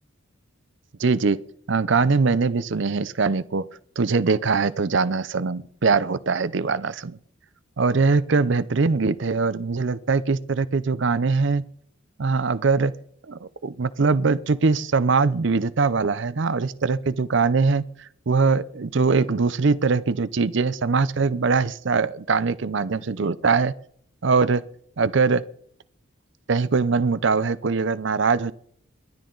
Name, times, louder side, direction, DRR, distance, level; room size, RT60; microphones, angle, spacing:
voice 1, 1.0-1.4 1.7-3.7 4.0-7.2 7.8-11.6 12.2-12.9 13.3-23.7 24.2-24.6 25.0-25.4 26.5-28.5, right 4 dB, 55° right, 0.5 m, -22 dB
27.0 x 12.0 x 3.9 m
head